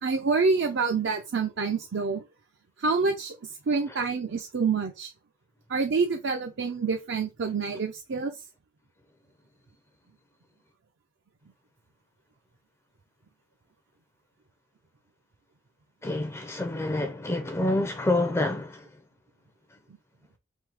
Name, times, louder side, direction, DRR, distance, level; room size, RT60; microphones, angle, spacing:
voice 1, 0.0-2.2 2.8-3.3 3.7-5.1 5.7-8.4, right 4 dB, 60° right, 0.5 m, -27 dB
voice 2, 16.0-18.8, left 2 dB, 15° left, 0.5 m, -27 dB
3.7 x 2.7 x 4.7 m
head